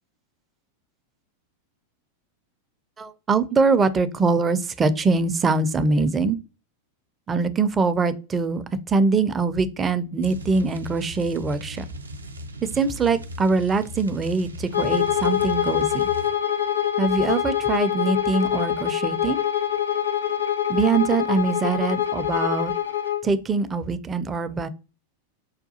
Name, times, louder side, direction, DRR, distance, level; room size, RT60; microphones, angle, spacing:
voice 1, 3.0-6.4 7.3-11.9 12.6-16.1 17.0-19.4 20.7-22.7 23.2-24.7, right 4 dB, 20° right, 0.4 m, -23 dB
sound 1, 10.2-16.3, left 1 dB, 80° right, 0.4 m, -38 dB
Bowed string instrument, 14.7-23.3, left 10 dB, 75° left, 0.6 m, -24 dB
5.6 x 2.2 x 2.7 m
figure-of-eight pair, 90°, 0 cm